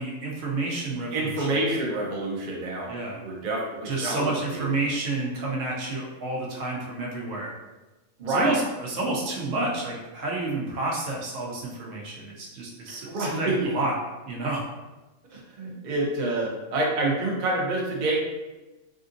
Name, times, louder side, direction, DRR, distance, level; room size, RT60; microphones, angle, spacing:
voice 1, 0.0-1.5 2.9-3.2 3.9-7.5 8.3-13.9 14.3-14.7 15.3-15.4, right 2 dB, 65° right, -3 dB, 0.9 m, -30 dB
voice 2, 1.1-2.9 3.2-4.9 8.2-8.6 12.9-13.7 15.5-18.2, right 2 dB, 50° right, -2 dB, 0.6 m, -27 dB
3.4 x 2.5 x 2.5 m, 1.1 s
omnidirectional pair, 1.5 m